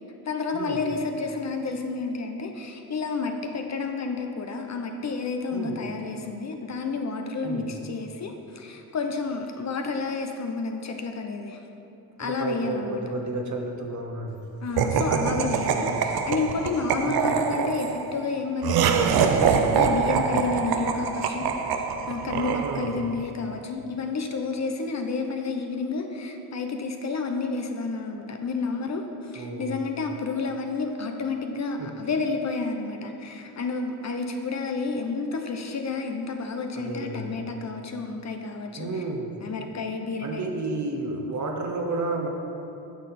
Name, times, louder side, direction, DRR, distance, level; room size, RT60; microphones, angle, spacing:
voice 1, 0.3-11.6 12.2-13.0 14.6-21.5 21.7-38.9 39.4-40.5, left 4 dB, 40° left, 4 dB, 0.8 m, -30 dB
voice 2, 5.5-5.8 7.4-7.7 12.2-14.4 15.7-16.0 17.0-17.3 22.3-23.0 29.3-29.7 31.8-31.9 36.7-37.4 38.8-39.4 40.2-42.3, right 2 dB, 40° right, 2 dB, 1.1 m, -32 dB
Laughter, 14.8-23.1, right 6 dB, 55° right, 0.7 m, -24 dB
9.5 x 6.4 x 4.2 m, 2.8 s
cardioid pair, 90°, 44 cm